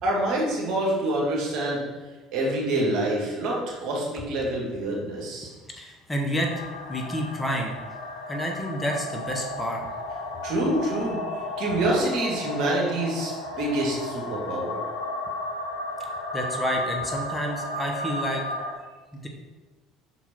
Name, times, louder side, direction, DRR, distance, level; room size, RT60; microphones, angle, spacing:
voice 1, 0.0-1.8 2.3-5.5 10.4-14.8, right 1 dB, 60° right, -3 dB, 1.9 m, -26 dB
voice 2, 5.8-6.5 6.9-7.7 8.3-9.8 16.3-18.4 19.2-19.3, equal, 15° left, 1 dB, 1.2 m, -29 dB
sound 1, 6.3-18.7, left 1 dB, 80° left, 0.7 m, -34 dB
6.0 x 4.4 x 4.3 m, 1.2 s
hypercardioid pair, 60°, 0 cm